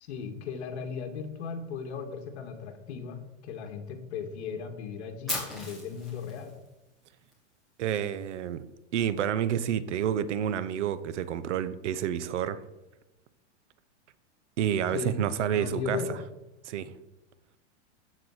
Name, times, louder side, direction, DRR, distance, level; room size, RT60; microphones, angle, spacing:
voice 1, 0.0-6.5 14.9-16.2, left 6 dB, 70° left, 2.0 m, -37 dB
Fire, 5.3-7.3, left 2 dB, ahead, 2.7 m, -37 dB
voice 2, 7.8-8.6 8.9-12.6 14.6-16.0 16.6-16.9, right 9 dB, 85° right, 1.0 m, -29 dB
13.5 x 4.8 x 8.0 m
supercardioid pair, 165°, 35 cm